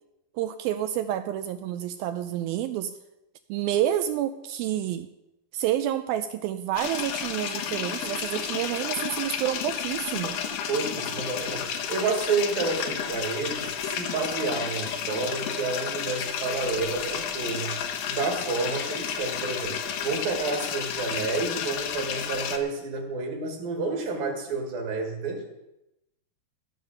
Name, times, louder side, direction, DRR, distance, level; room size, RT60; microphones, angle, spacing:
voice 1, 0.4-2.9 3.5-5.1 5.5-10.4, right 11 dB, 85° right, 10 dB, 2.1 m, -29 dB
sound 1, 6.7-22.6, left 8 dB, 70° left, 2.5 m, -32 dB
voice 2, 10.7-17.8 18.1-19.8 20.0-25.4, right 4 dB, 65° right, 2 dB, 3.5 m, -30 dB
15.0 x 7.2 x 6.3 m, 0.92 s
omnidirectional pair, 4.7 m